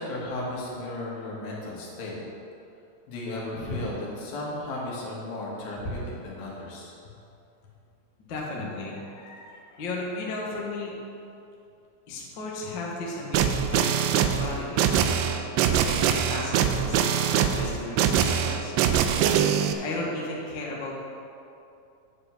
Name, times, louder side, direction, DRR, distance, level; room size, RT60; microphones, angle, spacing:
voice 1, 0.0-2.2 3.1-6.9, left 1 dB, 75° left, -4 dB, 3.4 m, -34 dB
voice 2, 8.3-10.9 12.1-14.9 15.8-18.7 19.6-20.9, left 2 dB, 60° left, -3 dB, 1.2 m, -35 dB
sound 1, 13.3-19.7, right 8 dB, 80° right, 2.0 m, -23 dB
9.6 x 4.8 x 7.1 m, 2.7 s
omnidirectional pair, 4.2 m